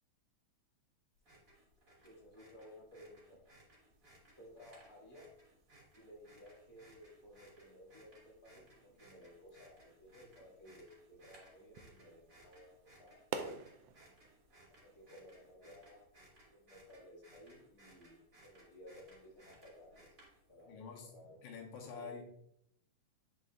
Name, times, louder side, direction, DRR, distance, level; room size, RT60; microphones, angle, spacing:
sound 1, 1.2-20.6, right 1 dB, 30° right, 2.4 m, -64 dB
voice 1, 2.0-3.4 4.4-5.3 5.9-13.2 14.8-16.1 16.5-20.1 20.5-21.5 21.8-22.1, equal, 15° left, -5 dB, 1.2 m, -57 dB
sound 2, 3.9-15.6, right 6 dB, 80° right, 2.0 m, -53 dB
voice 2, 20.7-21.1 21.4-22.2, left 5 dB, 75° left, 0 dB, 2.5 m, -47 dB
9.3 x 5.1 x 2.4 m, 0.73 s
omnidirectional pair, 3.6 m